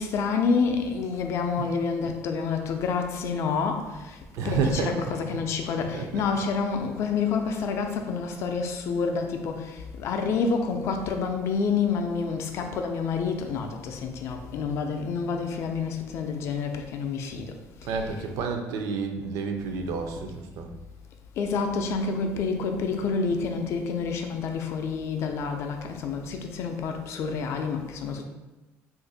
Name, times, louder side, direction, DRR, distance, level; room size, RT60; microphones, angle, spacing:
voice 1, 0.0-4.2 4.4-17.5 17.9-18.1 21.4-28.3, left 5 dB, 50° left, 4 dB, 0.4 m, -28 dB
voice 2, 4.3-5.1 5.9-6.3 17.8-20.7, right 4 dB, 65° right, 4 dB, 0.4 m, -30 dB
2.7 x 2.5 x 3.9 m, 1.1 s
cardioid pair, 155°, 6 cm